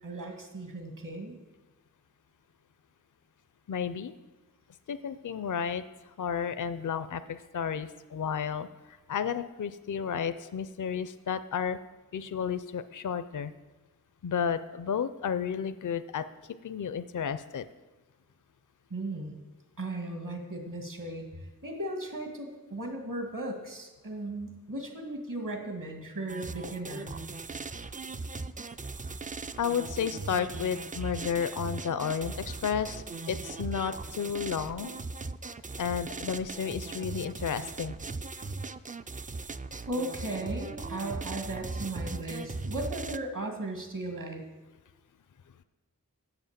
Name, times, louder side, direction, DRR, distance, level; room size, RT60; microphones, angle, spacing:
voice 1, 0.0-1.4 18.9-19.4 19.8-27.1 39.9-44.4, right 2 dB, 60° right, 3 dB, 1.9 m, -36 dB
voice 2, 3.7-4.1 4.9-5.8 6.2-8.7 9.1-11.8 12.1-13.5 14.2-16.2 16.6-17.7 29.6-35.0 35.8-37.9, left 7 dB, 60° left, 13 dB, 0.5 m, -32 dB
sound 1, 26.3-43.2, right 3 dB, 25° right, 0.3 m, -39 dB
7.9 x 7.1 x 7.3 m, 1.1 s
wide cardioid pair, 50°, 35 cm